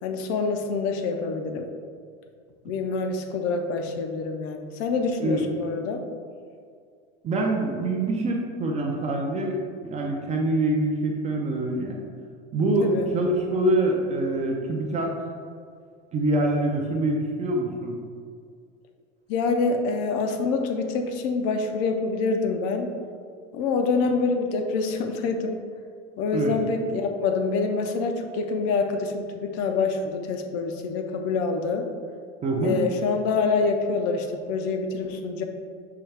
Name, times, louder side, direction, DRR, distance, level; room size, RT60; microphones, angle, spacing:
voice 1, 0.0-1.7 2.6-6.0 12.8-13.1 19.3-22.9 23.5-25.6 26.2-31.9 32.6-35.4, left 4 dB, 55° left, 5 dB, 0.5 m, -26 dB
voice 2, 5.2-5.7 7.2-12.0 12.5-15.1 16.1-18.0 26.3-26.5 32.4-32.8, right 1 dB, 20° right, 0 dB, 0.4 m, -25 dB
5.6 x 2.3 x 3.2 m, 2.1 s
supercardioid pair, 135°, 31 cm